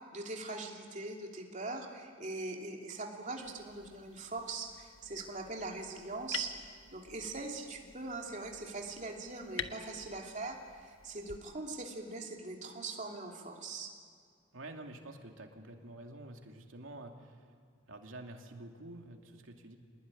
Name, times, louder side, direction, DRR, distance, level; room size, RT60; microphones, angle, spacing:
voice 1, 0.0-13.9, right 3 dB, 40° right, 1 dB, 3.0 m, -41 dB
sound 1, 3.3-11.4, left 8 dB, 75° left, 1.2 m, -48 dB
voice 2, 14.5-17.4 17.9-19.8, right 2 dB, 90° right, 3 dB, 2.7 m, -48 dB
26.0 x 19.5 x 10.0 m, 2.2 s
head